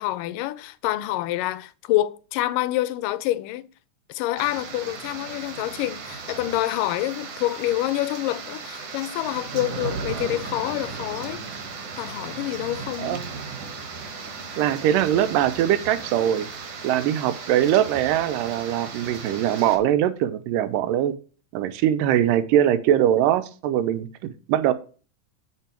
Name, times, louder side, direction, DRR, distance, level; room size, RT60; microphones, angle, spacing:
voice 1, 0.0-3.6 4.1-11.4 12.0-13.2, left 15 dB, 85° left, 2.1 m, -27 dB
sound 1, 4.4-19.8, right 5 dB, 60° right, 1.9 m, -36 dB
voice 2, 13.0-13.3 14.6-16.5 16.8-21.2 21.5-24.7, right 11 dB, 80° right, 2.3 m, -22 dB
7.5 x 7.0 x 4.4 m
omnidirectional pair, 3.9 m